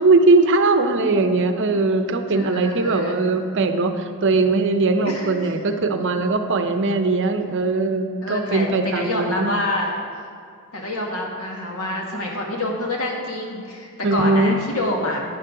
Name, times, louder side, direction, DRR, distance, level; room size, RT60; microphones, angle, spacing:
voice 1, 0.0-9.5 14.0-14.6, right 3 dB, 60° right, 8 dB, 0.7 m, -20 dB
voice 2, 2.3-3.2 5.0-5.5 8.2-9.9 10.7-15.2, left 1 dB, 90° left, -1 dB, 1.9 m, -27 dB
11.5 x 9.2 x 3.8 m, 2.4 s
head